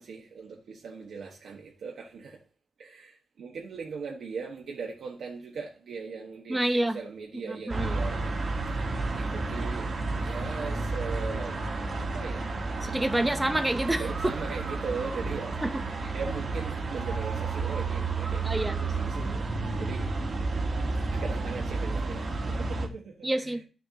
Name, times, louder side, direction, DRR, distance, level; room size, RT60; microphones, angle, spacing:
voice 1, 0.0-2.4 2.8-8.3 9.1-9.9 10.1-11.6 12.1-12.5 13.9-15.6 16.1-19.4 19.8-20.1 21.1-23.6, right 5 dB, 75° right, 1.3 m, -39 dB
voice 2, 6.5-7.0 7.5-8.0 12.8-14.0 15.6-15.7 16.0-16.1 18.4-18.8 23.2-23.6, right 1 dB, 10° right, 0.7 m, -28 dB
sound 1, 7.7-22.9, right 3 dB, 40° right, 1.4 m, -31 dB
12.5 x 6.7 x 2.8 m
wide cardioid pair, 165°, 0 cm